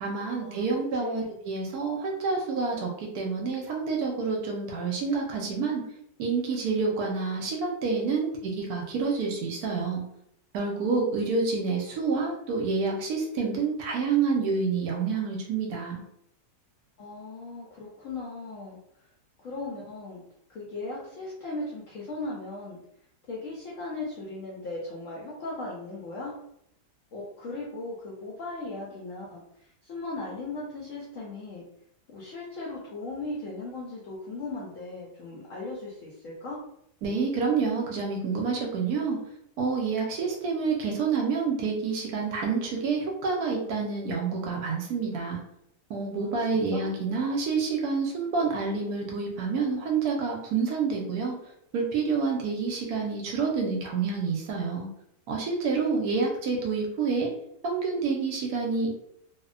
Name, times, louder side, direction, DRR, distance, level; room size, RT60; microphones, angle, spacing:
voice 1, 0.0-5.8 6.2-10.0 10.5-16.0 37.0-39.2 39.6-45.4 45.9-51.3 51.7-54.9 55.3-57.3 57.6-58.9, right 4 dB, 75° right, 0 dB, 1.0 m, -28 dB
voice 2, 0.9-1.3 17.0-18.8 19.4-20.2 20.5-22.8 23.3-26.4 27.1-31.6 32.1-36.6 46.2-46.9, left 2 dB, 65° left, -5 dB, 0.8 m, -37 dB
2.8 x 2.1 x 2.4 m, 0.73 s
omnidirectional pair, 1.8 m